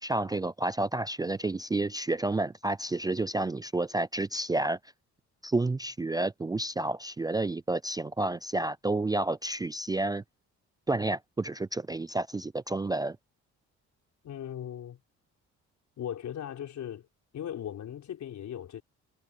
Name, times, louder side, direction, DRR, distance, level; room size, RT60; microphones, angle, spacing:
voice 1, 0.0-4.8 5.4-10.2 10.9-13.2, right 2 dB, 15° right, 0.4 m, -30 dB
voice 2, 14.2-15.0 16.0-17.1 17.3-18.8, left 10 dB, 70° left, 5.3 m, -38 dB
cardioid pair, 90°, 30 cm